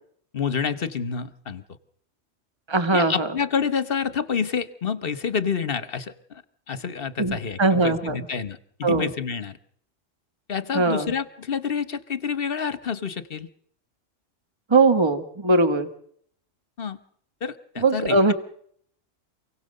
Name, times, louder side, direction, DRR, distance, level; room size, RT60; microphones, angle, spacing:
voice 1, 0.3-1.6 2.9-6.4 6.7-9.6 10.5-13.5 16.8-17.0 17.4-18.3, left 6 dB, 50° left, 14 dB, 1.2 m, -28 dB
voice 2, 2.7-3.3 7.2-8.2 8.8-9.1 10.7-11.1 14.7-15.9 17.8-18.3, right 3 dB, 20° right, 10 dB, 1.5 m, -20 dB
28.0 x 17.5 x 6.6 m, 0.64 s
omnidirectional pair, 1.3 m